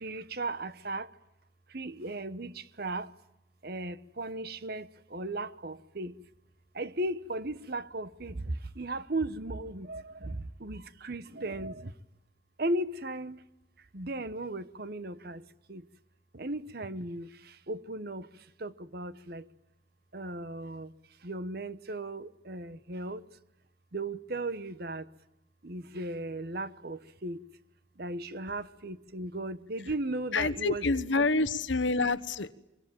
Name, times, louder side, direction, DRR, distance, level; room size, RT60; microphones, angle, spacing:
voice 1, 0.0-1.1 1.7-2.5 2.8-3.1 3.6-4.9 5.1-6.1 6.8-8.3 8.8-10.3 10.6-11.7 12.6-13.4 13.9-15.4 15.7-15.8 16.4-17.3 17.7-18.2 18.6-19.4 20.1-20.9 21.2-23.2 23.9-25.0 25.6-27.4 28.0-31.3, right 2 dB, 50° right, 1.0 m, -36 dB
voice 2, 30.3-32.5, left 3 dB, 70° left, 1.2 m, -27 dB
25.0 x 24.5 x 9.0 m
head